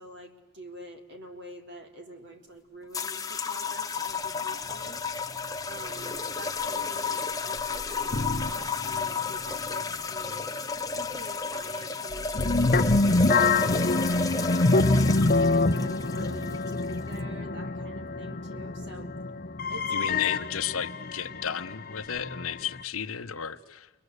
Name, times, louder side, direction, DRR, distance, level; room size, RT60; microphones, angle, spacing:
voice 1, 0.0-5.0 5.7-10.5 10.9-14.3 14.8-19.1 19.7-20.2, right 1 dB, 55° right, 3 dB, 3.4 m, -45 dB
sound 1, 2.9-17.2, left 4 dB, 15° left, 1.0 m, -32 dB
sound 2, 7.6-9.2 9.5-9.7 10.2-10.4 12.1-22.8, left 3 dB, 40° left, 0.9 m, -26 dB
voice 2, 19.9-23.9, left 8 dB, 70° left, 11 dB, 1.0 m, -33 dB
29.5 x 24.0 x 8.1 m, 1.2 s
head